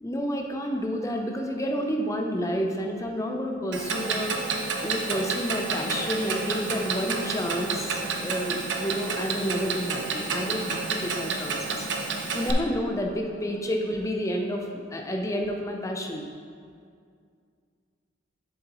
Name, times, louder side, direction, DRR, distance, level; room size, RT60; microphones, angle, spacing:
voice 1, 0.0-4.4 4.8-11.9 12.3-16.3, equal, 15° left, 2 dB, 0.5 m, -30 dB
Clock, 3.7-12.5, right 4 dB, 60° right, 0.6 m, -30 dB
7.6 x 6.6 x 3.0 m, 2.2 s
head